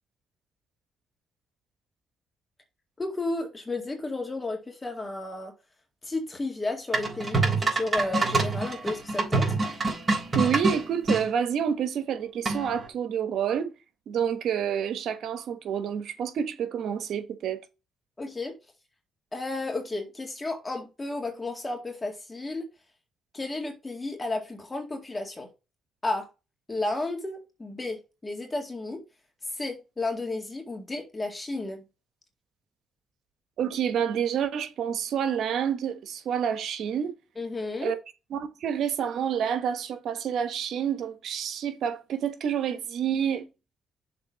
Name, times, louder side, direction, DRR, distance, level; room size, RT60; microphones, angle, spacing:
voice 1, 3.0-5.5 6.0-9.5 18.2-18.6 19.3-22.6 23.3-25.5 26.0-26.3 26.7-29.0 29.6-31.8 37.4-37.9, left 2 dB, 20° left, 2.0 m, -33 dB
sound 1, 6.9-11.2 12.4-12.9, right 3 dB, 35° right, 3.8 m, -26 dB
voice 2, 10.3-13.7 14.1-17.6 33.6-37.1 37.8-38.0 38.3-43.5, right 8 dB, 70° right, 1.2 m, -28 dB
6.8 x 3.6 x 6.2 m
cardioid pair, 90°, 0 cm